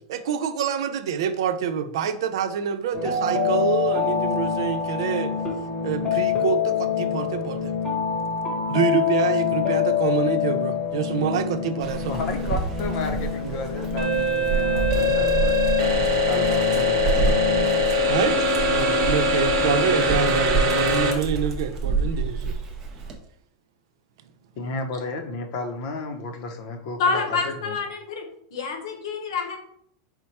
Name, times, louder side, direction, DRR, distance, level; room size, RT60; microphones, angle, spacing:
voice 1, 0.1-5.3 5.8-7.7 8.7-12.3 13.4-13.6 15.0-15.2 18.1-18.4 18.7-22.6, right 7 dB, 65° right, 10 dB, 0.4 m, -26 dB
sound 1, 2.9-18.7, left 6 dB, 20° left, 0.9 m, -27 dB
Dog, 11.8-23.2, right 4 dB, 20° right, 0.6 m, -29 dB
voice 2, 12.1-15.7 16.1-18.4 24.6-27.8, left 3 dB, 40° left, 5 dB, 0.6 m, -33 dB
sound 2, 14.0-21.1, left 1 dB, 50° right, 0.9 m, -22 dB
voice 3, 27.0-28.3 28.5-29.6, left 4 dB, 75° left, 4 dB, 0.9 m, -27 dB
4.4 x 2.1 x 4.1 m, 0.69 s
supercardioid pair, 165°, 3 cm